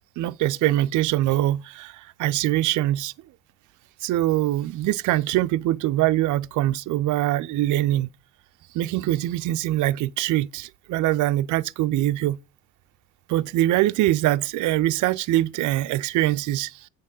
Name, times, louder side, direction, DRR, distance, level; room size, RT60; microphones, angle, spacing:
voice 1, 0.2-3.1 4.0-8.1 8.7-12.4 13.3-16.9, right 15 dB, 60° right, 0.6 m, -23 dB
8.4 x 6.4 x 5.2 m
supercardioid pair, 70°, 34 cm